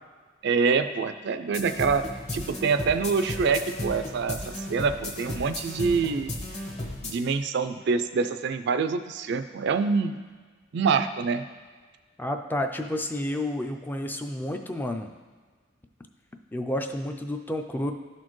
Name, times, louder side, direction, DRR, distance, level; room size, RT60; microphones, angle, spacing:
voice 1, 0.4-2.0 2.3-6.3 7.0-10.2 10.7-11.4, right 5 dB, 60° right, 10 dB, 0.4 m, -26 dB
sound 1, 1.5-7.1, left 1 dB, 35° left, 1.0 m, -35 dB
voice 2, 12.2-15.1 16.5-17.9, left 1 dB, 10° left, 5 dB, 0.4 m, -30 dB
12.5 x 4.3 x 3.1 m, 1.5 s
head